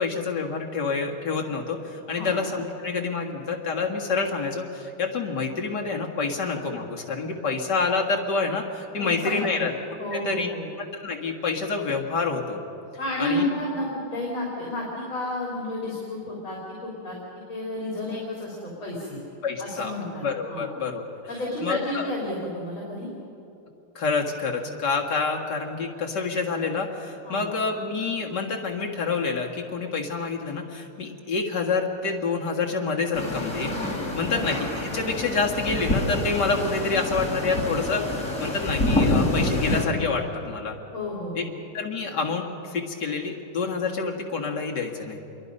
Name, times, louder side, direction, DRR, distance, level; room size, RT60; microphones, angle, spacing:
voice 1, 0.0-10.5 10.8-12.6 13.2-13.5 19.4-19.9 20.2-21.0 21.6-22.1 24.0-33.8 34.1-40.8 41.4-41.5 41.7-45.2, left 4 dB, 55° left, 0 dB, 2.4 m, -28 dB
voice 2, 9.0-9.7 10.0-10.7 13.0-17.2 17.5-19.2 19.6-20.7 21.3-23.1 27.2-27.4 34.2-34.4 40.9-41.5, left 1 dB, 70° left, -4 dB, 4.4 m, -31 dB
sound 1, 33.1-39.9, left 1 dB, 40° left, 3.9 m, -27 dB
27.5 x 22.5 x 5.4 m, 2.8 s
omnidirectional pair, 2.3 m